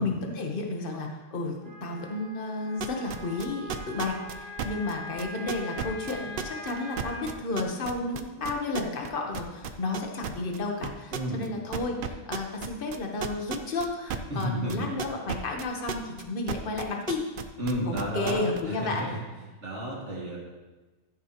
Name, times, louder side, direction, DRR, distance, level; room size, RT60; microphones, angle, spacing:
voice 1, 0.0-17.2 17.8-19.1, left 3 dB, 50° left, 2 dB, 1.3 m, -32 dB
Wind instrument woodwind instrument, 1.6-7.3, left 1 dB, 25° left, 2.7 m, -42 dB
sound 1, 2.8-9.1 9.3-11.5 11.7-16.2 16.5-18.6, right 8 dB, 55° right, 0.7 m, -33 dB
voice 2, 11.1-11.4 14.3-14.9 17.6-18.4 18.7-19.2 19.6-20.4, right 1 dB, 85° right, -4 dB, 2.5 m, -32 dB
14.0 x 6.7 x 2.9 m, 1.2 s
omnidirectional pair, 1.2 m